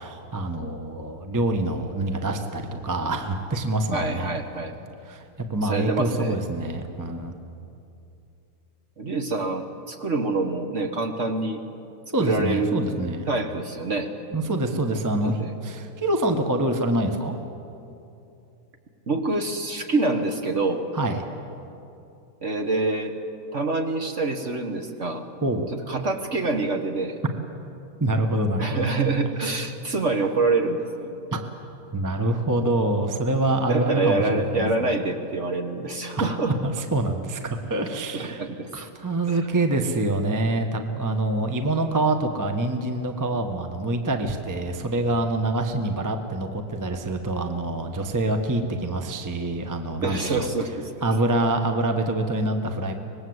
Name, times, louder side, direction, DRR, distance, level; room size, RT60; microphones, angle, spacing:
voice 1, 0.0-4.3 5.1-7.3 12.1-13.3 14.3-17.4 20.9-21.2 25.4-25.7 28.0-28.9 31.3-31.4 31.9-34.7 36.2-36.3 36.6-38.4 38.7-50.5 51.0-52.9, right 2 dB, 15° right, 5 dB, 0.8 m, -26 dB
voice 2, 3.9-4.7 5.6-6.4 9.0-11.6 12.2-12.8 13.3-14.1 15.2-15.5 19.1-20.9 22.4-23.1 23.5-25.2 25.9-27.2 28.6-31.1 33.7-36.6 38.1-38.9 39.3-39.4 50.0-50.7, right 3 dB, 40° right, 5 dB, 1.4 m, -26 dB
24.5 x 20.0 x 8.0 m, 2.8 s
omnidirectional pair, 2.4 m